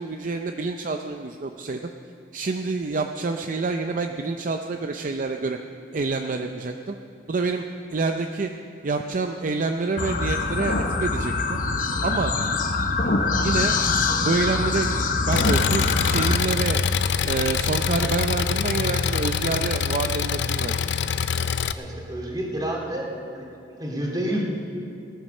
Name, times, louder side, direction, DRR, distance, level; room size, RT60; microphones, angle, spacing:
voice 1, 0.0-1.8 2.3-5.6 5.9-7.0 7.3-7.7 7.9-8.5 8.8-11.6 12.0-12.3 13.4-13.7 14.2-16.8 17.2-21.1, right 3 dB, 50° right, 5 dB, 0.5 m, -27 dB
sound 1, 10.0-16.4, left 3 dB, 50° left, 0.9 m, -24 dB
Engine, 15.3-21.7, left 7 dB, 85° left, 0.5 m, -25 dB
voice 2, 21.8-23.1 23.3-23.5 23.8-24.4, right 1 dB, 25° right, -1 dB, 2.3 m, -29 dB
18.0 x 9.2 x 6.5 m, 2.6 s
head